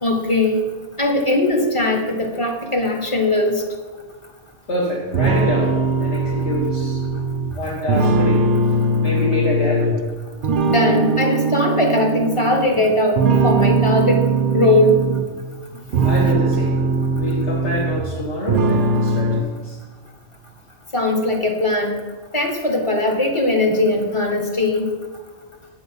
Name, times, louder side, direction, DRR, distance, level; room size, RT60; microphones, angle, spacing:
voice 1, 0.0-0.6 1.0-3.6 10.6-14.2 14.5-15.0 20.9-22.0 22.3-24.9, left 2 dB, 30° left, 2 dB, 0.8 m, -19 dB
voice 2, 4.7-7.1 7.5-8.4 9.0-9.9 16.0-16.8 17.2-19.8, left 1 dB, 70° left, -4 dB, 1.5 m, -26 dB
sound 1, 5.1-10.0 10.4-12.7 13.2-15.3 15.7-18.2 18.5-19.4, right 3 dB, 55° right, 0.7 m, -20 dB
7.9 x 4.4 x 7.0 m, 1.4 s
omnidirectional pair, 1.2 m